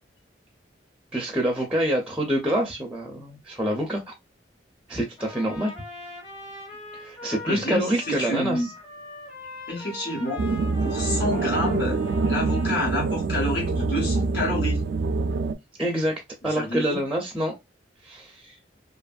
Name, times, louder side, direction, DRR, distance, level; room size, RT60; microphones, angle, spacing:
voice 1, 1.1-4.1 4.9-5.7 7.0-8.7 15.8-17.6 18.0-18.5, right 1 dB, 5° right, 0.5 m, -26 dB
Trumpet, 5.2-13.3, left 1 dB, 30° left, 1.2 m, -42 dB
voice 2, 7.5-8.7 9.7-10.4 10.8-12.0 12.3-14.8 16.4-17.0, left 1 dB, 65° left, 1.3 m, -28 dB
sound 1, 10.4-15.5, right 3 dB, 70° right, 0.3 m, -25 dB
2.8 x 2.5 x 2.2 m
head